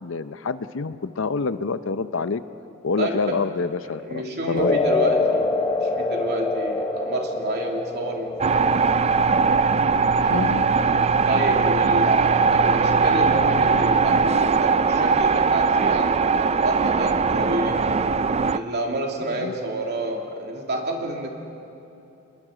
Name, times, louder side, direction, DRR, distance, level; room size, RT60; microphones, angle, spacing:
voice 1, 0.0-2.4 2.8-4.8 10.2-10.6 19.4-19.5, left 4 dB, 65° left, 13 dB, 0.7 m, -27 dB
voice 2, 3.0-3.4 3.8-8.6 11.3-17.8 18.5-21.3, right 1 dB, 55° right, 1 dB, 2.8 m, -29 dB
sound 1, 4.6-12.9, left 3 dB, 20° left, 1.1 m, -27 dB
sound 2, 8.4-18.6, right 5 dB, 30° right, 0.4 m, -20 dB
28.0 x 21.5 x 5.0 m, 2.8 s
head